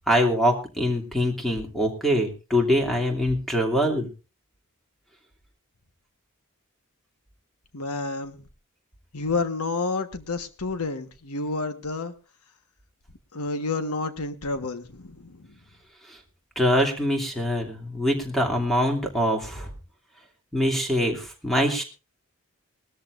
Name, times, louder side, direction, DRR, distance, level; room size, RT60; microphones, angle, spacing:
voice 1, 0.1-4.1 16.1-16.2 16.6-19.7 20.5-21.8, equal, ahead, 2 dB, 2.6 m, -24 dB
voice 2, 7.7-8.4 9.1-12.1 13.3-15.6, left 3 dB, 85° left, 9 dB, 1.4 m, -30 dB
20.5 x 13.5 x 2.6 m, 0.31 s
head